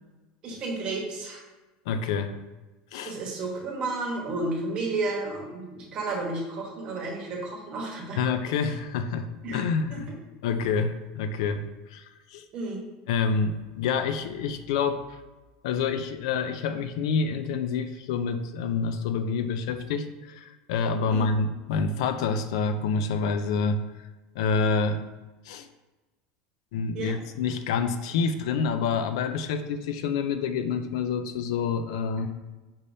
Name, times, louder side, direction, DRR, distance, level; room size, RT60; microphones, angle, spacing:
voice 1, 0.4-1.4 3.0-8.2 9.4-9.6 9.9-10.2 12.5-12.8 21.1-21.3 26.9-27.2, right 2 dB, 30° right, -1 dB, 1.0 m, -32 dB
voice 2, 1.9-2.4 2.9-3.2 8.2-10.1 10.4-11.6 11.9-12.0 12.3-12.5 13.1-15.2 15.6-23.8 24.4-25.0 25.5-25.7 26.7-32.3, left 5 dB, 80° left, 9 dB, 0.4 m, -27 dB
5.3 x 3.3 x 2.7 m, 1.2 s
supercardioid pair, 165°, 3 cm